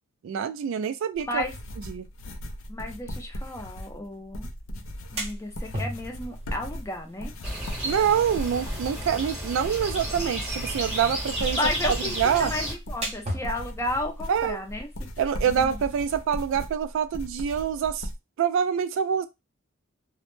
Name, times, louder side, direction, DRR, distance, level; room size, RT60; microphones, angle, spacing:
voice 1, 0.2-1.4 1.9-2.1 7.8-11.6 12.2-12.5 14.3-14.6 15.2-18.1 18.4-19.3, right 8 dB, 65° right, 0.3 m, -26 dB
sound 1, 1.1-18.2, equal, 65° left, 0.4 m, -38 dB
voice 2, 2.7-4.5 5.1-7.3 11.6-14.9 15.4-15.8, left 1 dB, 15° left, 0.5 m, -33 dB
sound 2, 4.8-16.1, right 1 dB, 30° right, 0.7 m, -41 dB
sound 3, 7.4-12.7, right 1 dB, 5° right, 0.9 m, -32 dB
2.1 x 2.0 x 3.0 m
head